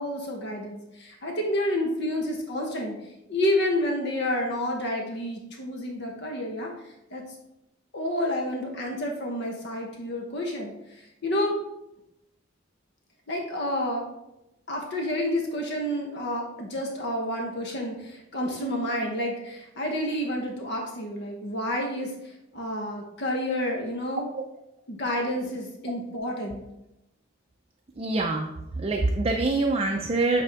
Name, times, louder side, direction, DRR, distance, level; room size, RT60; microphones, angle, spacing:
voice 1, 0.0-2.9 3.3-6.7 7.1-7.2 7.9-11.6 13.3-14.0 14.7-24.2 24.9-26.6, left 1 dB, 60° left, 1 dB, 1.0 m, -29 dB
voice 2, 28.0-30.4, right 2 dB, 30° right, 2 dB, 0.4 m, -25 dB
8.4 x 3.4 x 3.4 m, 0.88 s
head